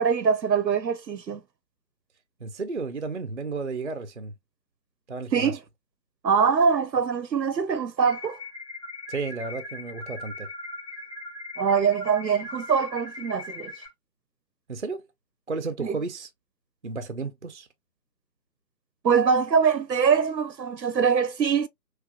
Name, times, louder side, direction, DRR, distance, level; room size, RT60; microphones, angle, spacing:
voice 1, 0.0-1.4 5.3-5.6 6.2-8.4 11.6-13.7 15.8-16.0 19.0-21.7, right 6 dB, 85° right, 0.7 m, -23 dB
voice 2, 2.4-4.3 5.1-5.6 9.1-10.5 14.7-15.0 15.5-16.3 16.8-17.7, right 4 dB, 45° right, 0.5 m, -33 dB
sound 1, 8.1-13.9, left 2 dB, 20° left, 1.2 m, -39 dB
5.9 x 2.3 x 2.2 m
figure-of-eight pair, 155°, 50 cm